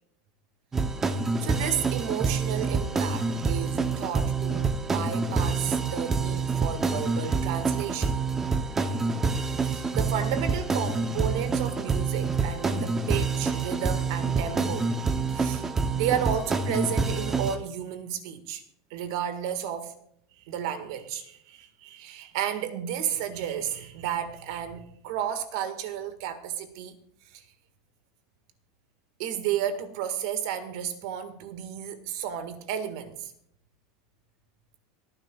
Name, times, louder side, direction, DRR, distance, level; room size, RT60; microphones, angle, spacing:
Groovy Bass Action Theme Music, 0.7-17.6, right 4 dB, 15° right, 0.7 m, -27 dB
voice 1, 1.4-8.2 9.5-14.9 15.3-15.6 15.9-18.6 18.9-19.9 20.4-26.9 27.3-27.4 29.2-33.3, right 9 dB, 65° right, 1.7 m, -32 dB
26.5 x 10.0 x 2.4 m
supercardioid pair, 155°, 3 cm